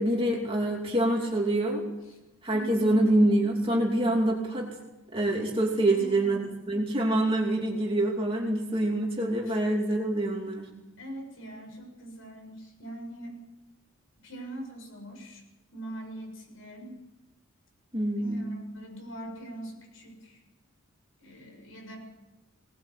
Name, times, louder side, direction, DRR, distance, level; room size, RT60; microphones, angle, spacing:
voice 1, 0.0-1.8 2.4-4.8 5.1-6.4 6.7-10.7 17.9-18.5, right 1 dB, 25° right, -1 dB, 2.8 m, -26 dB
voice 2, 2.5-3.0 5.8-6.4 9.5-9.6 11.0-13.4 14.2-15.4 15.7-16.9 18.2-20.4 21.2-22.0, right 1 dB, 75° left, 2 dB, 7.3 m, -42 dB
21.0 x 19.0 x 8.2 m, 1.0 s
head